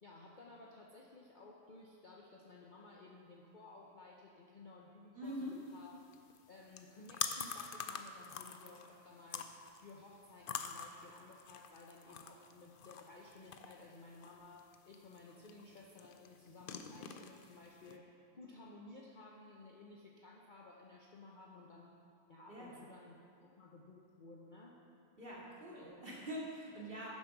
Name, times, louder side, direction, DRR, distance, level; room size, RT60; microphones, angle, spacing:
voice 1, 0.0-5.9 6.5-9.6 9.8-22.0 22.3-24.8, left 2 dB, 40° left, -2 dB, 0.7 m, -56 dB
voice 2, 5.1-5.5 22.5-22.8 25.2-27.1, equal, 35° right, -5 dB, 2.3 m, -44 dB
sound 1, 5.3-18.0, left 7 dB, 80° left, 0.4 m, -47 dB
9.9 x 7.5 x 5.8 m, 2.6 s
omnidirectional pair, 1.6 m